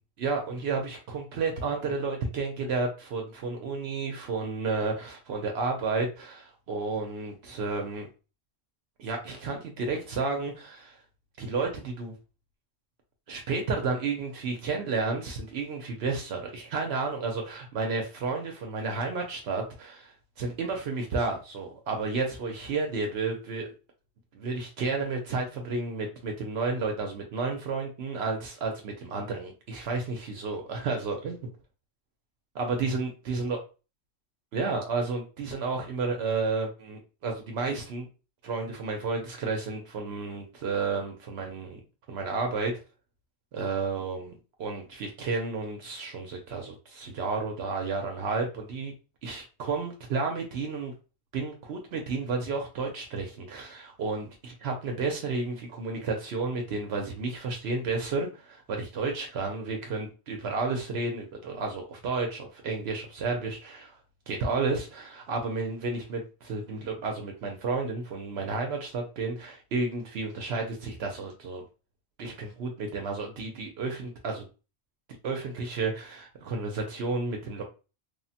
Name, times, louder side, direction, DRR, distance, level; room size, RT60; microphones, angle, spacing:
voice 1, 0.2-8.1 9.0-11.0 11.4-12.1 13.3-23.7 24.3-31.4 32.5-33.6 34.5-38.1 38.4-41.8 42.1-42.7 43.5-44.3 44.6-48.9 49.2-50.9 51.3-64.0 64.3-71.6 72.2-74.5 75.2-77.6, right 4 dB, 70° right, 2 dB, 0.8 m, -31 dB
3.2 x 2.1 x 2.7 m, 0.33 s
omnidirectional pair, 1.1 m